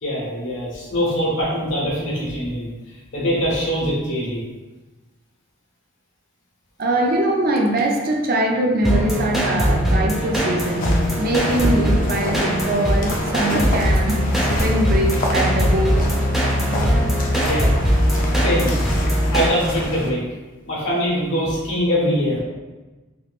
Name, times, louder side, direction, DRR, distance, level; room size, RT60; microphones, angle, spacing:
voice 1, 0.0-2.7 3.1-4.4 17.2-17.7 18.4-18.7 19.3-20.2 20.7-22.4, equal, 70° left, -6 dB, 1.3 m, -23 dB
voice 2, 6.8-14.3 14.6-16.1, right 1 dB, 50° right, 1 dB, 0.5 m, -22 dB
sound 1, 8.8-19.5, equal, ahead, 0.6 m, -20 dB
sound 2, 10.6-20.1, left 1 dB, 45° left, 0.5 m, -30 dB
3.4 x 2.9 x 2.4 m, 1.2 s
head